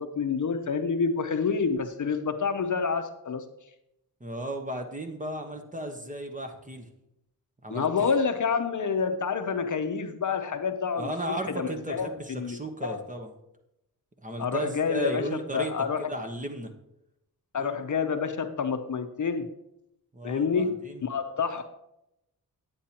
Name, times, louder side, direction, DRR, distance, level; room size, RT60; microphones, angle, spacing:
voice 1, 0.0-3.4 7.7-13.1 14.4-16.1 17.5-19.5 20.2-21.6, left 5 dB, 50° left, 8 dB, 0.7 m, -28 dB
voice 2, 4.2-6.9 7.6-8.1 11.0-13.3 14.2-15.7 16.0-16.7 17.6-17.8 20.1-21.0, right 1 dB, 20° right, 4 dB, 1.1 m, -35 dB
9.9 x 8.6 x 2.9 m, 0.85 s
wide cardioid pair, 80°, 38 cm